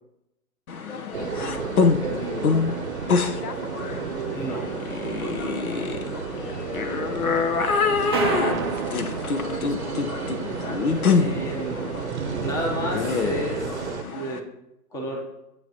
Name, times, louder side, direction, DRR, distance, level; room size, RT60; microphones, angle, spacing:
sound 1, 0.7-14.4, left 5 dB, 65° left, 1.2 m, -26 dB
sound 2, 1.1-14.0, right 7 dB, 45° right, 0.9 m, -32 dB
voice 1, 1.2-1.8 2.2-2.7 3.0-3.7 6.4-8.5 9.1-10.3, left 4 dB, 85° left, 9 dB, 1.3 m, -40 dB
voice 2, 2.0-2.5 4.3-4.6 11.1-11.8 12.4-14.4 14.9-15.2, equal, 5° left, -1 dB, 1.0 m, -31 dB
sound 3, 8.1-10.1, right 5 dB, 15° right, 0.5 m, -29 dB
15.0 x 9.3 x 3.0 m, 0.90 s
hypercardioid pair, 145°, 47 cm